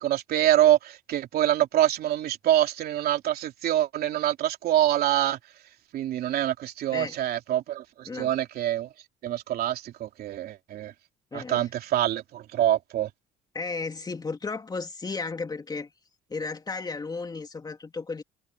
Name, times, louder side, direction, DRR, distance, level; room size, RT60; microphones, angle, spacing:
voice 1, 0.0-5.4 5.9-8.9 9.2-10.9 11.3-13.1, right 12 dB, 65° right, 3.1 m, -25 dB
voice 2, 11.3-11.7 13.5-15.9 16.3-18.2, left 4 dB, 25° left, 2.8 m, -34 dB
cardioid pair, 110°, 17 cm